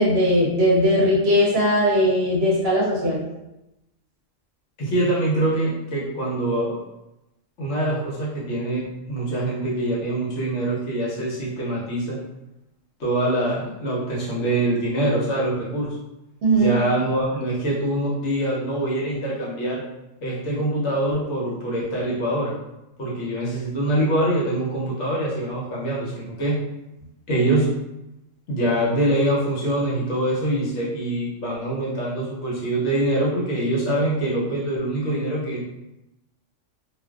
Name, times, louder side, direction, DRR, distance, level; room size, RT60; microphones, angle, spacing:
voice 1, 0.0-3.2 16.4-16.7, equal, 60° right, -6 dB, 0.7 m, -19 dB
voice 2, 4.8-6.8 7.6-12.2 13.0-16.0 16.6-19.8 20.2-22.5 23.0-26.6 27.3-27.7 28.5-35.6, right 1 dB, 65° left, -6 dB, 1.0 m, -24 dB
2.4 x 2.2 x 2.3 m, 0.93 s
omnidirectional pair, 1.4 m